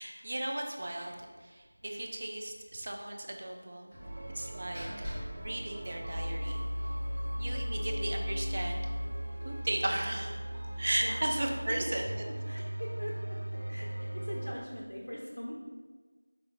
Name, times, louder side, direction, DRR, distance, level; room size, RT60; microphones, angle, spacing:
voice 1, 0.0-4.0 4.4-6.7 7.3-8.8 9.4-10.4 10.8-12.1, right 1 dB, 30° right, 1 dB, 0.4 m, -35 dB
Slam, 1.0-1.3 1.6-1.7 2.0-2.1 3.9-6.5, equal, ahead, 1.0 m, -45 dB
sound 1, 4.0-14.5, equal, 55° right, 0.9 m, -37 dB
voice 2, 10.7-11.2 11.7-11.9 12.3-13.4 13.7-15.6, equal, 65° left, -4 dB, 0.7 m, -42 dB
5.0 x 3.7 x 2.4 m, 1.4 s
figure-of-eight pair, 170°, 0 cm